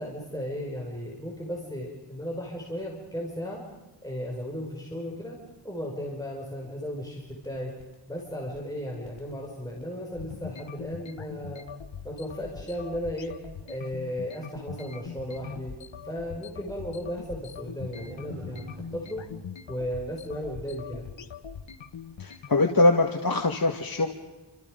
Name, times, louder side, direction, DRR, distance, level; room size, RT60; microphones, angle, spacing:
voice 1, 0.0-3.6 4.0-5.4 5.6-7.7 8.1-11.6 12.0-13.3 13.7-15.7 16.0-19.2 19.7-21.1, equal, 10° left, -2 dB, 5.4 m, -35 dB
sound 1, 7.2-22.5, left 7 dB, 90° left, 1.1 m, -42 dB
Motor vehicle (road), 13.9-14.0 15.1-19.5, right 2 dB, 85° right, 3.8 m, -48 dB
voice 2, 22.2-24.1, left 2 dB, 50° left, 3 dB, 1.8 m, -23 dB
29.5 x 27.5 x 5.3 m, 1.0 s
wide cardioid pair, 70°, 44 cm